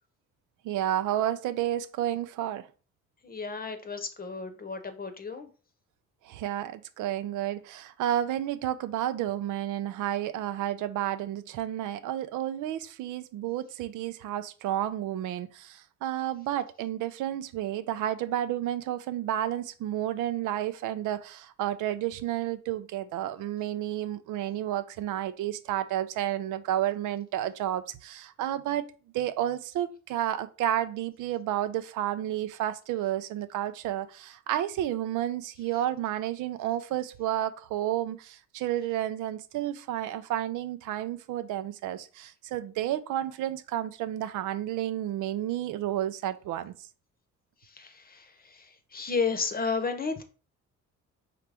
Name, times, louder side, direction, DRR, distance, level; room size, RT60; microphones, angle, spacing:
voice 1, 0.6-2.6 6.3-28.9 29.1-46.7, right 12 dB, 85° right, 0.5 m, -31 dB
voice 2, 3.2-5.5 47.6-50.2, left 4 dB, 30° left, 0.8 m, -33 dB
4.9 x 3.0 x 3.4 m
cardioid pair, 90°, 30 cm